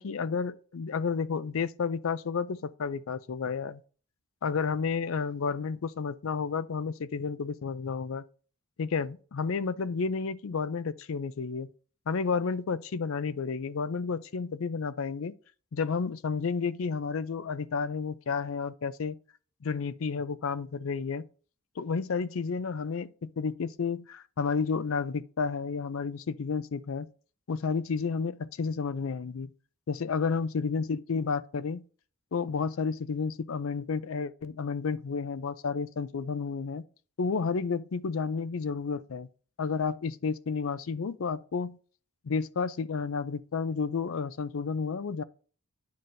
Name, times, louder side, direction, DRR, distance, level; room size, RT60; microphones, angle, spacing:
voice 1, 0.0-3.8 4.4-8.2 8.8-11.7 12.1-15.3 15.7-19.2 19.6-21.2 21.8-27.1 27.5-29.5 29.9-31.8 32.3-36.8 37.2-39.3 39.6-41.8 42.2-45.2, left 5 dB, 65° left, 0.4 m, -31 dB
9.4 x 5.8 x 2.6 m
head